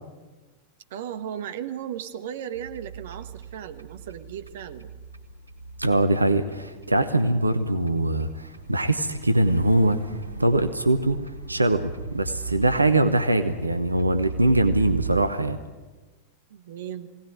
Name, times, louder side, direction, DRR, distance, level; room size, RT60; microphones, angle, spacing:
voice 1, 0.9-4.9 16.5-17.1, right 9 dB, 55° right, 9 dB, 1.2 m, -36 dB
sound 1, 2.5-15.2, right 5 dB, 85° left, 2.4 m, -38 dB
voice 2, 5.8-10.0 10.4-11.2 11.5-15.6, right 1 dB, 85° right, 9 dB, 1.0 m, -22 dB
21.0 x 17.5 x 9.5 m, 1.3 s
figure-of-eight pair, 90°, 0 cm